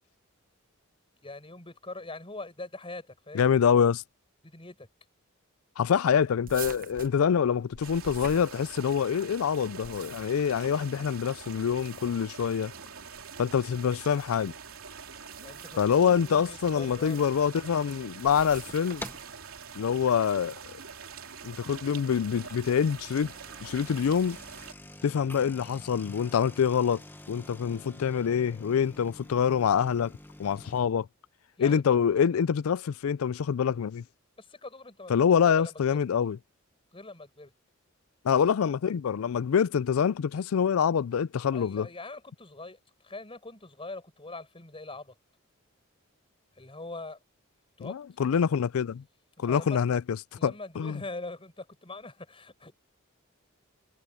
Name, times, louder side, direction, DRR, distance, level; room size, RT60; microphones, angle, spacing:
voice 1, 1.2-3.4 4.4-4.9 15.4-17.4 31.6-32.0 34.4-36.0 36.9-37.5 41.5-45.1 46.6-47.2 47.8-48.0 49.4-49.8 50.3-52.7, left 2 dB, 25° left, 5.7 m, -43 dB
voice 2, 3.3-4.0 5.8-12.7 13.4-14.5 15.8-19.0 19.8-20.6 21.4-23.3 23.6-24.4 25.0-27.0 27.3-30.1 30.4-31.1 31.6-34.0 35.1-36.4 38.2-41.9 47.8-49.0 49.4-50.2 50.4-51.0, left 7 dB, 85° left, 0.4 m, -25 dB
sound 1, 6.5-9.1 9.6-10.5 11.6-12.3 13.1-13.4 15.2-15.9 16.9-17.4 18.2-19.4, right 7 dB, 45° right, 1.1 m, -46 dB
sound 2, 7.8-24.7, right 6 dB, 85° right, 3.0 m, -45 dB
sound 3, 18.2-18.6 19.0-19.4 19.9-20.2 20.7-20.8 21.1-21.2 22.2-30.8, left 1 dB, 10° left, 1.3 m, -47 dB
head